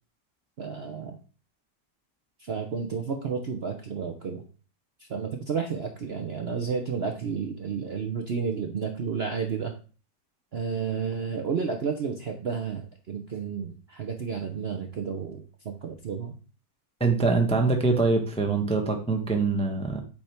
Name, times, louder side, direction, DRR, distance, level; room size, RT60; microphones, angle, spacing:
voice 1, 0.6-1.2 2.4-4.4 5.0-9.7 10.5-16.3, right 6 dB, 55° right, 4 dB, 0.7 m, -31 dB
voice 2, 17.0-20.0, right 3 dB, 5° left, 3 dB, 0.6 m, -24 dB
8.2 x 3.5 x 4.4 m, 0.37 s
omnidirectional pair, 1.8 m